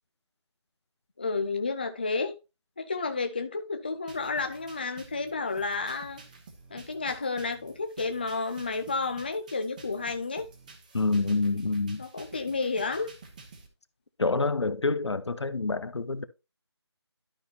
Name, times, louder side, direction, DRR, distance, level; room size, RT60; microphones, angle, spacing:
voice 1, 1.2-2.3 2.8-6.2 6.7-10.5 12.0-13.1, left 4 dB, 20° left, 0.5 m, -31 dB
sound 1, 4.1-13.7, right 4 dB, 15° right, 1.0 m, -50 dB
voice 2, 10.9-12.0 14.2-16.2, left 3 dB, 80° left, 1.1 m, -27 dB
12.0 x 5.5 x 2.9 m
figure-of-eight pair, 170°, 14 cm